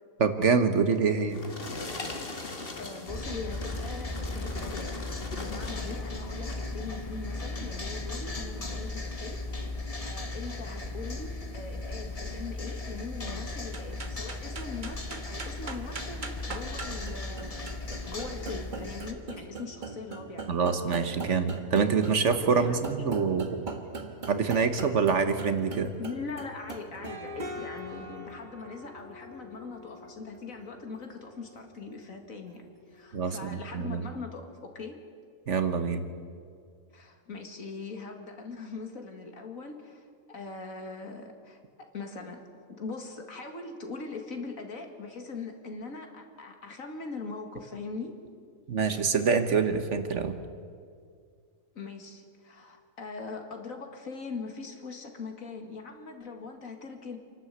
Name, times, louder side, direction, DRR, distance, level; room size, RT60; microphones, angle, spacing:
voice 1, 0.2-1.4 20.5-23.5 24.3-25.9 33.1-34.0 35.5-36.0 48.7-50.3, right 5 dB, 60° right, 9 dB, 1.5 m, -26 dB
sound 1, 0.9-6.0 6.4-6.8 7.4-7.5, left 2 dB, 45° left, 1.9 m, -40 dB
voice 2, 2.8-5.0 5.3-9.8 10.0-17.5 18.1-20.6 22.5-23.0 26.0-35.0 36.9-48.2 51.7-57.2, left 4 dB, 75° left, 4 dB, 2.4 m, -41 dB
sound 2, 3.1-19.1, left 2 dB, 25° left, 1.4 m, -36 dB
sound 3, 13.6-33.2, right 3 dB, 35° right, 1.3 m, -42 dB
27.5 x 12.0 x 8.2 m, 2.2 s
omnidirectional pair, 1.4 m